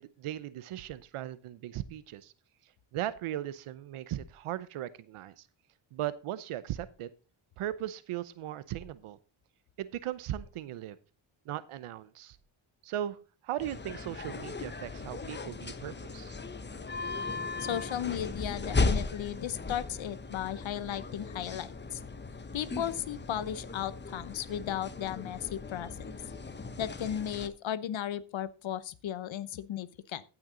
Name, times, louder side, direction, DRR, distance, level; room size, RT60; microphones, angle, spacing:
voice 1, 0.0-2.3 2.9-5.5 5.9-7.1 7.6-9.2 9.8-11.0 11.5-12.4 12.8-13.2 13.4-16.3, right 12 dB, 85° right, 16 dB, 0.8 m, -38 dB
sound 1, 13.6-27.5, left 3 dB, 20° left, 0.9 m, -37 dB
voice 2, 17.6-22.0 22.5-25.9 26.8-30.2, left 10 dB, 65° left, 16 dB, 0.9 m, -35 dB
15.0 x 6.0 x 3.8 m, 0.33 s
cardioid pair, 90°, 50 cm